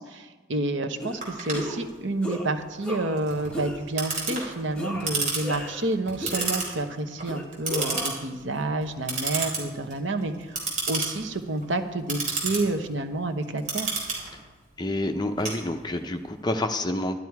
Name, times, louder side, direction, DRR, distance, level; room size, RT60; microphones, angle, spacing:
voice 1, 0.0-13.9, right 2 dB, 80° right, 7 dB, 1.0 m, -29 dB
sound 1, 1.0-1.2 1.5-1.9 2.2-2.5 2.8-3.2 3.5-3.8 4.3-4.4 4.7-5.9 6.2-6.8 7.3-8.2, left 1 dB, 5° left, 1.2 m, -35 dB
Clock, 1.2-16.2, right 3 dB, 40° right, 3.6 m, -32 dB
voice 2, 14.8-17.2, left 1 dB, 20° left, 6 dB, 0.7 m, -28 dB
12.5 x 11.5 x 4.7 m, 1.3 s
head